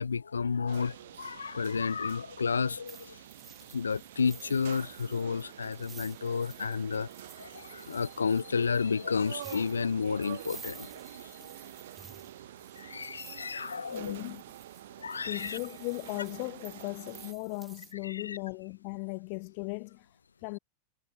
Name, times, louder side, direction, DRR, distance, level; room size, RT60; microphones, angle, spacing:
voice 1, 0.0-3.2 3.7-7.1 7.4-10.9 12.8-14.2 15.0-15.6 18.0-18.4, left 5 dB, 75° left, 0.3 m, -31 dB
sound 1, 0.7-17.3, right 13 dB, 60° right, 3.7 m, -48 dB
sound 2, 2.9-17.9, right 5 dB, 15° right, 3.6 m, -53 dB
voice 2, 13.9-14.4 15.2-20.6, left 37 dB, 45° left, 0.7 m, -37 dB
figure-of-eight pair, 90°, 0 cm